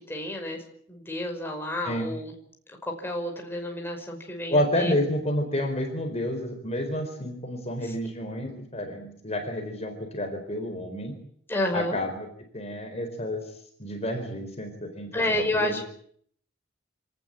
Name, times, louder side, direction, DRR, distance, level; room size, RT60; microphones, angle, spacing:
voice 1, 0.1-0.6 0.9-2.3 2.8-5.0 7.8-7.9 11.5-12.0 15.1-15.8, left 1 dB, 10° left, 2 dB, 5.5 m, -30 dB
voice 2, 4.5-11.1 11.7-12.3 12.5-13.5 13.8-15.8, left 1 dB, 30° left, 4 dB, 4.3 m, -30 dB
27.0 x 18.5 x 8.9 m, 0.64 s
head